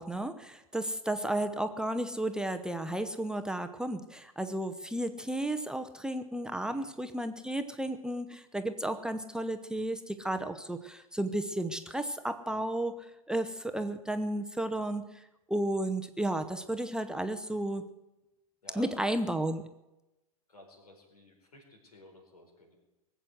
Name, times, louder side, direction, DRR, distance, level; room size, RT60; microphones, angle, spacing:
voice 1, 0.0-12.9 13.3-15.0 15.5-17.8 18.8-19.6, right 1 dB, 5° right, 8 dB, 0.7 m, -33 dB
voice 2, 18.6-19.2 20.5-22.8, left 1 dB, 80° left, 1 dB, 4.7 m, -52 dB
19.5 x 8.0 x 7.8 m, 0.97 s
figure-of-eight pair, 100°, 19 cm